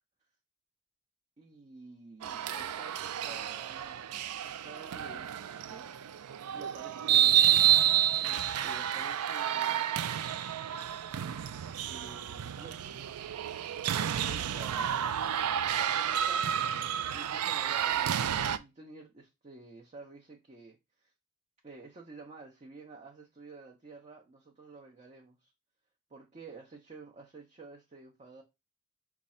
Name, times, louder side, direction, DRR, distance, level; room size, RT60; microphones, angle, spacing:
voice 1, 1.4-5.9 6.5-7.9 8.2-9.9 11.8-13.0 14.2-15.3 15.8-16.4 17.1-18.1 18.5-21.1 21.6-25.5 26.1-28.4, right 3 dB, 30° right, 0.7 m, -51 dB
sound 1, 2.2-18.6, right 10 dB, 90° right, 0.4 m, -30 dB
5.2 x 2.4 x 4.2 m
head